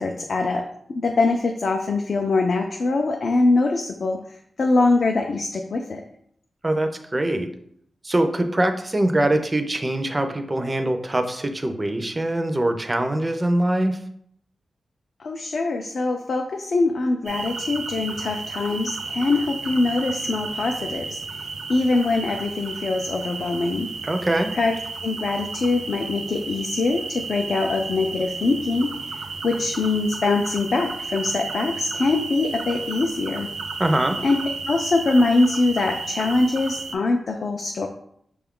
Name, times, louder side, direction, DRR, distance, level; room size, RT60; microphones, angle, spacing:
voice 1, 0.0-4.2 4.6-6.0 15.2-21.2 21.7-23.9 24.5-24.7 25.0-28.9 29.4-33.5 34.2-34.4 34.7-37.9, left 3 dB, 55° left, 3 dB, 0.3 m, -23 dB
voice 2, 6.6-7.5 8.0-14.0 24.0-24.5 33.8-34.2, right 1 dB, 15° right, 6 dB, 0.4 m, -23 dB
sound 1, 17.3-37.0, right 4 dB, 85° right, 0.5 m, -33 dB
5.9 x 2.3 x 3.6 m, 0.69 s
wide cardioid pair, 170°, 0 cm